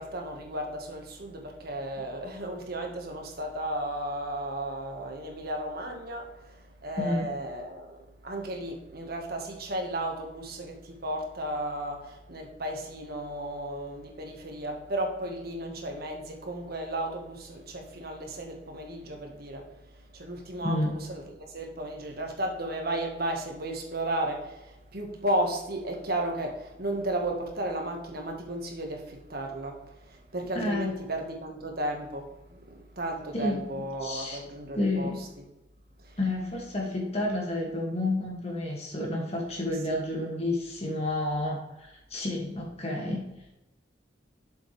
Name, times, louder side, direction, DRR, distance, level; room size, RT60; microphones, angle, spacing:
voice 1, 0.0-35.4 36.0-36.3 39.7-40.0, right 1 dB, 55° right, 2 dB, 1.7 m, -34 dB
voice 2, 7.0-7.3 20.6-21.0 30.5-30.9 33.3-34.4 34.7-35.2 36.2-43.2, left 1 dB, 35° left, -1 dB, 2.4 m, -30 dB
7.7 x 7.2 x 3.5 m, 0.93 s
head